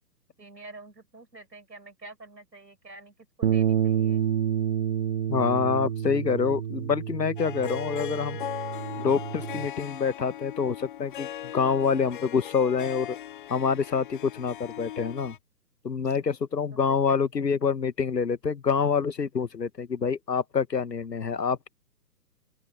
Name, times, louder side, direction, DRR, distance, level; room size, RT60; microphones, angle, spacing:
voice 1, 0.4-4.3 16.7-17.2, right 3 dB, 90° right, 5.6 m, -47 dB
Bass guitar, 3.4-9.7, right 9 dB, 40° right, 0.6 m, -28 dB
voice 2, 5.3-8.4 9.0-13.2 13.5-15.3 15.8-21.7, left 6 dB, 85° left, 1.4 m, -26 dB
Harp, 7.4-15.4, left 11 dB, 30° left, 0.8 m, -39 dB
open air
figure-of-eight pair, 135°, 49 cm